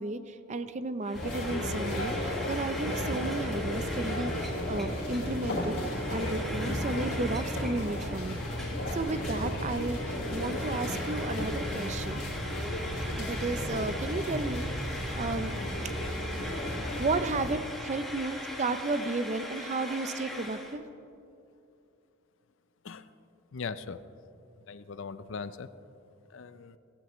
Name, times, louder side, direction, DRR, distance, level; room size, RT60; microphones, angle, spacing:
voice 1, 0.0-5.8 6.1-12.2 13.2-15.5 17.0-20.8, right 3 dB, 35° right, 11 dB, 0.5 m, -33 dB
Frying (food), 1.0-20.8, left 1 dB, ahead, 1.2 m, -41 dB
sound 1, 1.1-17.5, left 1 dB, 85° left, 3.4 m, -34 dB
voice 2, 23.5-24.0 24.7-25.7 26.3-26.8, left 5 dB, 65° left, 13 dB, 0.5 m, -40 dB
17.0 x 15.0 x 3.1 m, 2.7 s
head